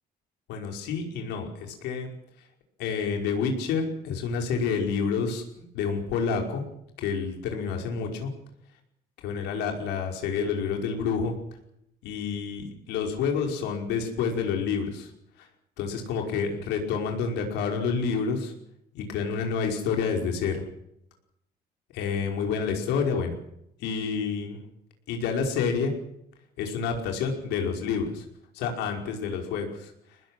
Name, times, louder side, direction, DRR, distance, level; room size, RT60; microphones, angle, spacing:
voice 1, 0.5-2.1 2.8-5.4 5.7-6.6 7.0-8.3 9.2-11.3 12.0-15.1 15.4-15.5 15.8-18.5 18.9-20.6 21.9-23.3 23.8-24.6 25.1-25.9 26.6-28.2 28.5-29.9, left 5 dB, 90° left, 3 dB, 5.5 m, -28 dB
24.5 x 20.0 x 7.7 m, 0.78 s
cardioid pair, 110°, 17 cm